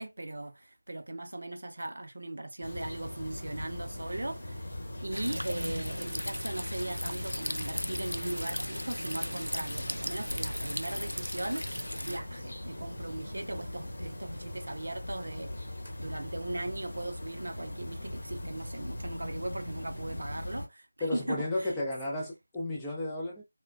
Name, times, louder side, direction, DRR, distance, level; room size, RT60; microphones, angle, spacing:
voice 1, 0.0-4.7 5.0-11.7 12.0-15.5 16.0-21.7, right 1 dB, 55° right, 0.5 m, -38 dB
sound 1, 2.6-20.7, left 1 dB, 45° left, 0.9 m, -40 dB
sound 2, 5.1-12.2, equal, 80° left, 0.4 m, -37 dB
voice 2, 21.0-23.4, left 2 dB, 10° left, 0.4 m, -33 dB
3.0 x 2.0 x 2.4 m
figure-of-eight pair, 165°, 0 cm